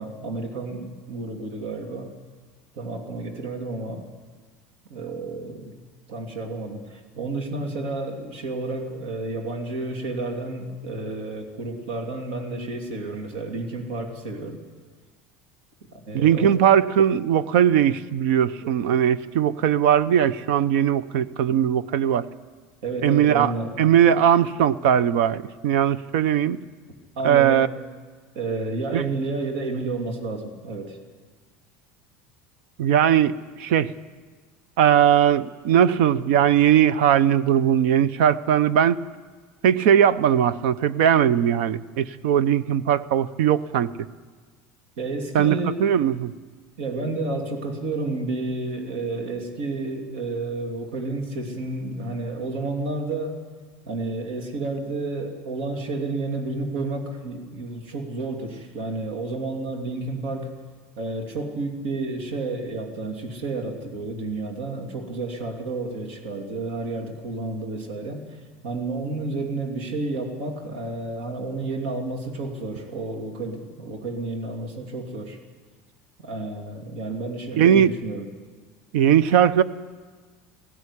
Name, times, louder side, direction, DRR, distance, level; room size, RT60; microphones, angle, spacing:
voice 1, 0.0-2.1 2.7-4.0 4.9-5.7 6.1-14.6 16.1-16.5 22.8-23.7 27.2-27.7 28.3-31.0 45.0-45.8 46.8-53.4 53.9-60.5 61.0-75.4 76.2-78.3, right 3 dB, 90° right, 3 dB, 2.9 m, -31 dB
voice 2, 16.1-22.3 23.0-23.5 23.8-26.6 27.2-27.7 28.9-29.0 32.8-33.9 34.8-39.0 39.6-43.9 45.3-46.3 77.6-77.9 78.9-79.6, right 9 dB, 75° right, 17 dB, 0.8 m, -19 dB
17.5 x 16.0 x 10.0 m, 1.5 s
cardioid pair, 175°, 6 cm